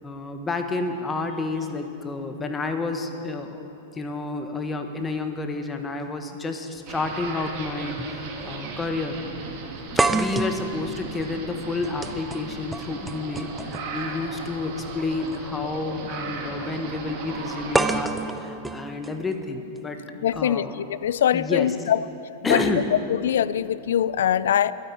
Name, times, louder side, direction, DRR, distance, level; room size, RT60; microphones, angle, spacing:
voice 1, 0.0-9.2 10.1-20.0 20.3-20.7 21.3-21.7 22.4-22.9, left 3 dB, 15° left, 6 dB, 1.4 m, -30 dB
sound 1, 6.8-6.9 8.0-8.2 8.5-8.6 10.0-14.0 15.2-15.4 17.7-19.8, right 3 dB, 10° right, 0.6 m, -28 dB
sound 2, 6.9-18.0, right 4 dB, 50° right, 2.3 m, -36 dB
voice 2, 20.2-22.0 22.4-22.6 23.1-24.7, left 10 dB, 75° left, 17 dB, 0.4 m, -23 dB
12.0 x 9.6 x 9.5 m, 2.9 s
hypercardioid pair, 105°, 0 cm